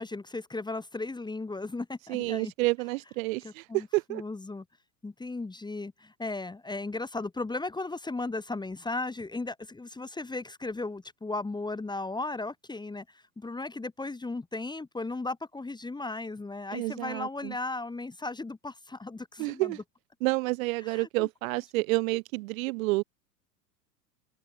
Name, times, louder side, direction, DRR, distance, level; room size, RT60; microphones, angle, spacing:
voice 1, 0.0-2.5 3.4-4.6 5.0-19.8 20.8-21.3, left 3 dB, 10° left, 2.2 m, -36 dB
voice 2, 2.1-4.2 16.7-17.5 19.4-19.8 20.2-23.0, right 23 dB, 55° right, 3.4 m, -29 dB
figure-of-eight pair, 90°, 49 cm